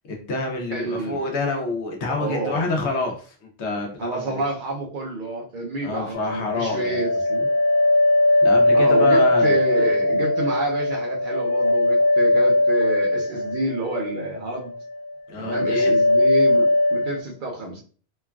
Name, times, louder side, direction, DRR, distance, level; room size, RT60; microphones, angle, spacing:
voice 1, 0.1-4.4 5.8-7.0 8.4-10.0 15.3-15.9, left 3 dB, 85° left, 1 dB, 1.0 m, -28 dB
voice 2, 0.7-1.2 2.1-2.6 4.0-7.5 8.7-14.7 15.4-17.8, right 2 dB, 55° right, 0 dB, 0.7 m, -29 dB
sound 1, 6.1-14.3 14.6-15.1 15.4-17.2, left 1 dB, 60° left, 0.8 m, -20 dB
3.1 x 2.2 x 2.3 m, 0.42 s
omnidirectional pair, 1.1 m